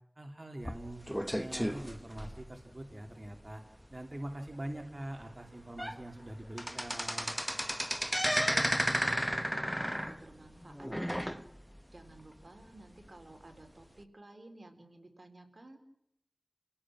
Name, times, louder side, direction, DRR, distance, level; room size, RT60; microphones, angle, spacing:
voice 1, 0.2-1.1 1.3-7.4, right 1 dB, 40° right, 2 dB, 2.7 m, -44 dB
sound 1, 0.6-2.8 3.3-3.5 3.8-3.9 4.5-4.6 5.2-5.3 5.6-6.0 6.3-11.8 12.2-12.3 13.1-13.2, equal, ahead, 1.1 m, -33 dB
voice 2, 8.5-15.8, right 2 dB, 60° right, 5 dB, 3.7 m, -54 dB
30.0 x 17.5 x 6.1 m, 0.76 s
wide cardioid pair, 50°, 0 cm